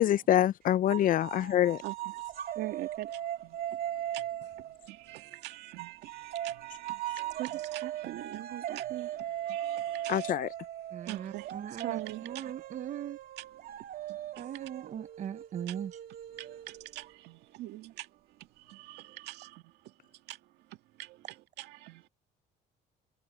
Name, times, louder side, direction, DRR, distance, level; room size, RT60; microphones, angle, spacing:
voice 1, 0.0-1.8 10.1-10.5, left 12 dB, 55° left, 0.5 m, -25 dB
sound 1, 0.9-5.2 5.8-17.1, right 12 dB, 60° right, 2.4 m, -39 dB
voice 2, 2.6-3.8 4.1-4.3 4.6-10.3 11.1-12.5 13.4-13.5 14.1-14.6 15.7-15.8 16.3-19.9 20.3-20.4 20.7-22.1, right 16 dB, 85° right, 2.2 m, -43 dB
voice 3, 10.9-13.2 14.4-15.9, right 9 dB, 45° right, 0.8 m, -39 dB
cardioid pair, 110°, 17 cm